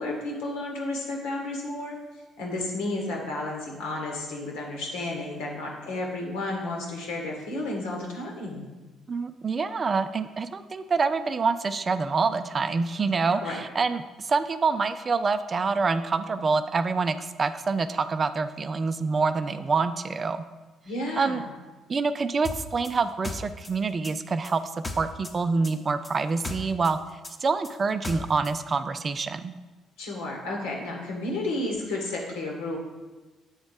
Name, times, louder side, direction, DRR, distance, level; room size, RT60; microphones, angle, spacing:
voice 1, 0.0-1.9 2.4-8.6 13.3-13.6 20.8-21.5 30.0-32.8, left 2 dB, 75° left, -1 dB, 1.4 m, -32 dB
voice 2, 9.1-20.4 21.2-21.4 21.9-27.0 27.4-29.5, right 4 dB, 40° right, 11 dB, 0.4 m, -26 dB
sound 1, 22.4-25.4 25.6-28.6, left 2 dB, 20° left, 0.9 m, -36 dB
7.9 x 4.0 x 5.0 m, 1.2 s
hypercardioid pair, 50°, 0 cm